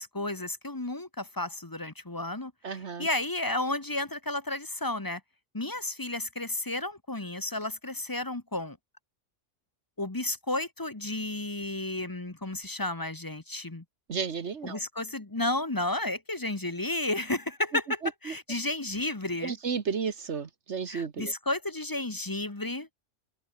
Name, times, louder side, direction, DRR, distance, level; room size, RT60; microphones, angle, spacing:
voice 1, 0.0-5.2 5.5-8.8 10.0-13.8 14.6-19.6 20.9-22.9, left 2 dB, 20° left, 1.1 m, -32 dB
voice 2, 2.6-3.1 14.1-14.8 18.3-18.4 19.4-21.3, right 6 dB, 70° right, 1.6 m, -33 dB
open air
omnidirectional pair, 1.2 m